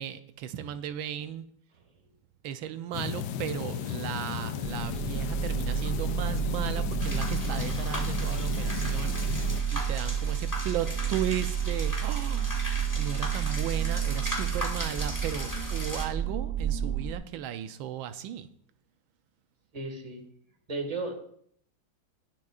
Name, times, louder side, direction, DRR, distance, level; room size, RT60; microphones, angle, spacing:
voice 1, 0.0-1.5 2.4-12.7 12.9-18.5, right 10 dB, 90° right, 10 dB, 1.4 m, -36 dB
sound 1, 2.9-9.6, left 9 dB, 70° left, 1.2 m, -34 dB
sound 2, 4.6-17.1, right 8 dB, 65° right, 0.5 m, -30 dB
sound 3, 7.0-16.1, left 1 dB, 10° left, 2.3 m, -38 dB
voice 2, 19.7-20.2 20.7-21.1, right 3 dB, 20° right, 3 dB, 1.8 m, -34 dB
20.0 x 7.3 x 2.4 m, 0.65 s
omnidirectional pair, 2.1 m